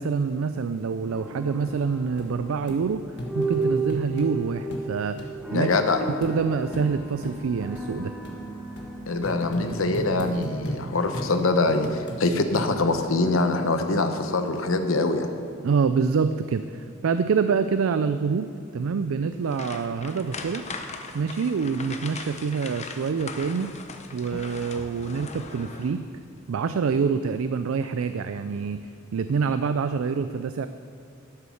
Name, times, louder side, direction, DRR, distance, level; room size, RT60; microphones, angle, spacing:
voice 1, 0.0-3.1 3.3-5.7 6.1-8.1 15.6-20.6 21.1-23.7 24.1-26.0 26.5-28.9 29.1-30.7, right 5 dB, 75° right, 11 dB, 0.4 m, -26 dB
sound 1, 1.1-11.1, right 3 dB, ahead, 0.9 m, -34 dB
sound 2, 1.7-1.8 2.2-2.3 2.7-2.8 3.2-4.3 4.7-4.9 5.2-5.3 5.7-5.8 6.2-6.3 6.7-6.9 7.2-7.4 7.7-7.9 8.2-8.4 8.8-8.9 9.2-10.8 11.1-11.3 11.8-12.2 12.5-13.0 13.5-13.6, equal, 55° left, 1.7 m, -35 dB
voice 2, 5.5-6.0 9.1-15.3, left 2 dB, 70° left, 7 dB, 0.9 m, -24 dB
sound 3, 19.4-26.1 26.5-26.7 27.1-27.2, left 4 dB, 35° left, 0.8 m, -39 dB
11.5 x 8.4 x 6.4 m, 2.5 s
head